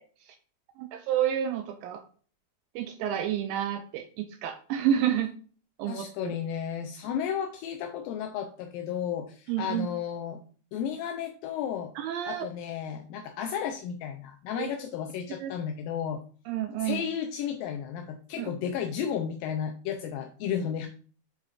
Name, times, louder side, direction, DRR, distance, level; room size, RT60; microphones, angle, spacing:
voice 1, 0.8-2.0 2.8-5.3 5.8-6.4 9.5-9.9 12.0-12.5 14.6-14.7 15.4-15.5 16.5-17.0 18.4-18.5, right 10 dB, 90° right, 6 dB, 2.0 m, -29 dB
voice 2, 5.9-10.4 10.7-11.9 12.3-16.2 16.8-20.9, left 8 dB, 80° left, 5 dB, 2.0 m, -33 dB
9.5 x 4.3 x 2.4 m, 0.41 s
omnidirectional pair, 4.6 m